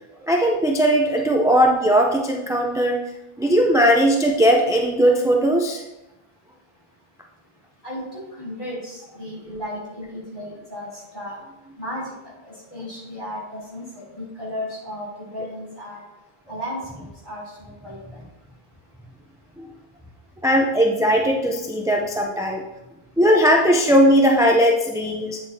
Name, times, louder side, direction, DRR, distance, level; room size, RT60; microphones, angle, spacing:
voice 1, 0.2-3.0 3.4-5.8 19.6-19.7 20.4-22.6 23.2-25.4, equal, 5° right, 1 dB, 0.4 m, -18 dB
voice 2, 7.8-10.9 11.1-11.4 11.8-12.0 12.4-15.1 15.3-16.0 16.5-16.8 17.2-18.0, left 1 dB, 30° left, -7 dB, 3.1 m, -34 dB
8.3 x 7.4 x 2.8 m, 0.94 s
omnidirectional pair, 1.0 m